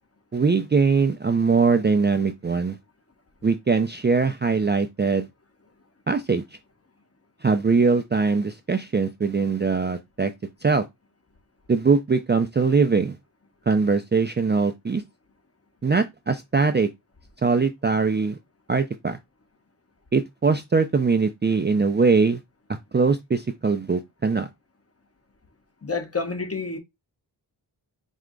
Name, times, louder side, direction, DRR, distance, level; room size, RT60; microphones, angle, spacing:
voice 1, 0.3-2.8 3.4-5.3 6.1-6.4 7.4-10.3 10.6-10.8 11.7-13.2 13.7-15.0 15.8-16.9 17.4-18.4 18.7-19.2 20.1-22.4 22.9-24.5, right 4 dB, 25° right, 0.5 m, -21 dB
voice 2, 25.8-26.8, left 4 dB, 30° left, 1.1 m, -28 dB
4.6 x 2.1 x 3.8 m
cardioid pair, 50°, 45 cm